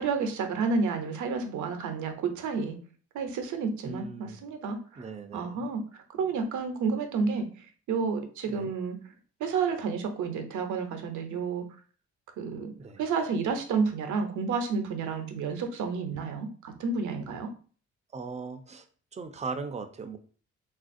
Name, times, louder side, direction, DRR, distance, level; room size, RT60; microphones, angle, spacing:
voice 1, 0.0-2.8 3.1-5.1 5.3-5.8 6.2-9.0 9.4-11.6 12.4-17.5, right 5 dB, 75° right, 6 dB, 0.6 m, -30 dB
voice 2, 3.8-4.4 5.0-5.6 8.5-8.7 12.8-13.0 18.1-18.8 19.1-20.2, right 4 dB, 25° right, 7 dB, 0.4 m, -38 dB
3.3 x 2.4 x 2.5 m, 0.41 s
cardioid pair, 90°, 30 cm